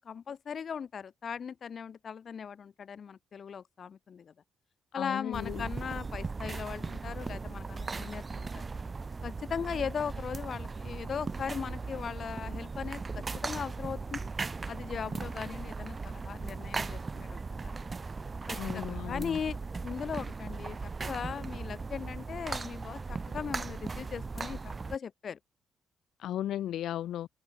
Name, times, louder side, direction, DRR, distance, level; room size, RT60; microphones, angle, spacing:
voice 1, 0.0-4.3 4.9-8.6 9.2-14.3 14.7-17.9 18.5-25.4, left 7 dB, 50° left, 2.0 m, -39 dB
voice 2, 4.9-5.7 18.5-19.4 26.2-27.3, left 12 dB, 75° left, 1.6 m, -35 dB
sound 1, 5.3-25.0, right 4 dB, 30° right, 1.0 m, -38 dB
open air
cardioid pair, 90°, 0 cm